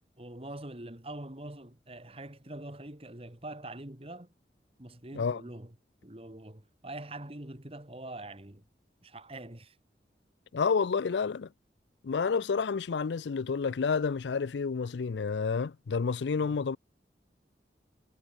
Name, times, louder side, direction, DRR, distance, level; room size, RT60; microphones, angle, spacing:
voice 1, 0.2-4.3 4.8-5.8 6.0-8.6 9.0-9.8 16.4-16.6, right 1 dB, 35° right, 2.1 m, -44 dB
voice 2, 10.5-11.5 12.0-16.8, left 5 dB, 85° left, 0.5 m, -29 dB
head